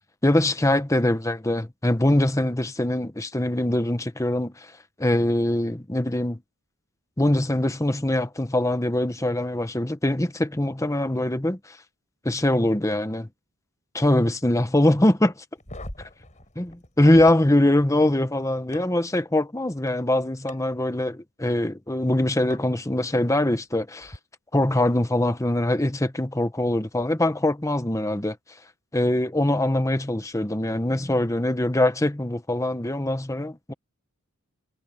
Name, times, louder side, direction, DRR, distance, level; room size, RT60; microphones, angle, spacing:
voice 1, 0.2-4.7 5.0-6.4 7.2-11.8 12.2-13.3 13.9-15.3 16.6-24.2 24.5-28.4 28.9-33.7, left 1 dB, 15° left, 1.1 m, -23 dB
sound 1, 15.6-17.3 18.7-18.8 20.5-20.6 22.5-22.6 24.0-24.2, left 1 dB, 35° left, 6.8 m, -40 dB
head